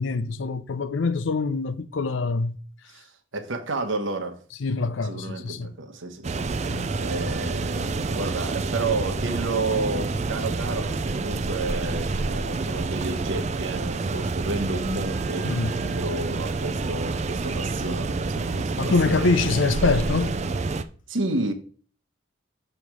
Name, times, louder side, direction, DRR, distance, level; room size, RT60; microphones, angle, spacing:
voice 1, 0.0-2.6 4.6-5.7 6.7-6.8 15.4-15.8 18.8-20.3, left 3 dB, 75° left, 0.6 m, -24 dB
voice 2, 3.3-4.4 5.0-15.6 15.8-19.4 21.1-21.5, right 2 dB, 80° right, 1.1 m, -31 dB
sound 1, 6.2-20.8, right 3 dB, 35° right, 0.4 m, -28 dB
7.0 x 3.3 x 6.1 m
head